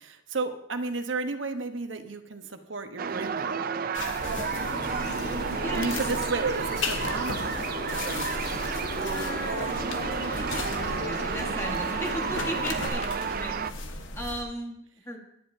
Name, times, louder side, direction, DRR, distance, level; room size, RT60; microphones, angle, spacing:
voice 1, 0.0-3.7 5.7-7.6 7.8-8.5, right 3 dB, 65° right, 7 dB, 1.1 m, -33 dB
sound 1, 3.0-13.7, right 6 dB, 45° right, 0.5 m, -32 dB
sound 2, 3.9-14.4, left 3 dB, 70° left, 1.2 m, -37 dB
Bird vocalization bird call bird song, 4.2-12.9, left 2 dB, 55° left, 1.2 m, -37 dB
voice 2, 5.6-6.0 9.1-9.8 10.4-13.6 14.1-15.2, equal, 15° left, 1 dB, 1.4 m, -36 dB
17.5 x 10.5 x 2.7 m, 0.77 s
head